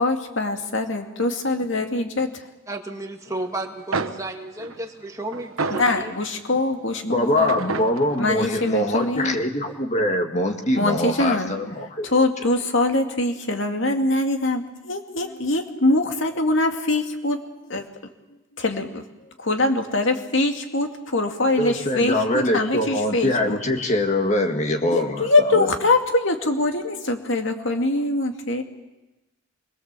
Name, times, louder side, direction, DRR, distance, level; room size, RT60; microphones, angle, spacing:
voice 1, 0.0-2.4 5.7-7.5 8.2-9.4 10.8-11.5 12.0-17.4 17.7-17.9 18.6-19.0 19.4-23.6 24.9-28.6, left 2 dB, 65° left, 4 dB, 2.3 m, -23 dB
voice 2, 2.7-6.2, right 2 dB, 15° right, 3 dB, 2.0 m, -33 dB
sound 1, 3.6-3.7 3.9-6.5 7.5-9.4, right 4 dB, 85° right, 1.2 m, -31 dB
voice 3, 7.0-12.1 21.6-25.3 25.5-25.7, left 1 dB, 35° left, 4 dB, 1.8 m, -23 dB
25.5 x 21.5 x 7.5 m, 1.0 s
head